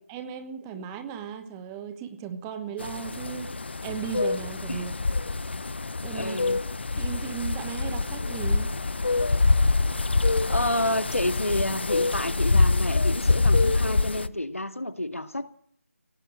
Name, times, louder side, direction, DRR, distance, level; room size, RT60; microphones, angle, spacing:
voice 1, 0.1-3.5 3.8-4.9 6.0-6.4 7.0-8.7, right 7 dB, 10° right, 8 dB, 1.3 m, -36 dB
sound 1, 2.8-14.3, left 3 dB, 50° left, 1.0 m, -25 dB
voice 2, 6.1-6.6 10.5-15.5, left 1 dB, 75° left, 9 dB, 2.1 m, -29 dB
23.5 x 18.0 x 7.7 m, 0.64 s
figure-of-eight pair, 160°, 8 cm